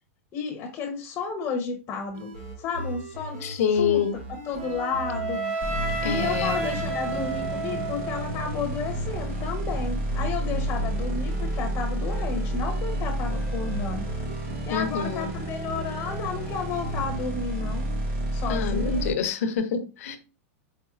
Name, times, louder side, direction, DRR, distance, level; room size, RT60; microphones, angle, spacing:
voice 1, 0.3-4.0 4.4-5.4 6.0-14.1 14.7-17.9 18.3-19.0, left 5 dB, 25° left, 4 dB, 0.7 m, -32 dB
sound 1, 2.0-11.8 12.1-17.2, right 1 dB, 80° right, 1.9 m, -38 dB
voice 2, 3.4-4.1 6.0-6.7 14.7-15.3 18.5-20.2, left 6 dB, 75° left, 8 dB, 0.7 m, -26 dB
Wind instrument woodwind instrument, 4.6-8.6, right 3 dB, 35° right, 1.8 m, -31 dB
sound 2, 5.6-19.1, right 1 dB, 50° right, 1.8 m, -31 dB
4.3 x 4.1 x 2.3 m, 0.33 s
supercardioid pair, 150°, 8 cm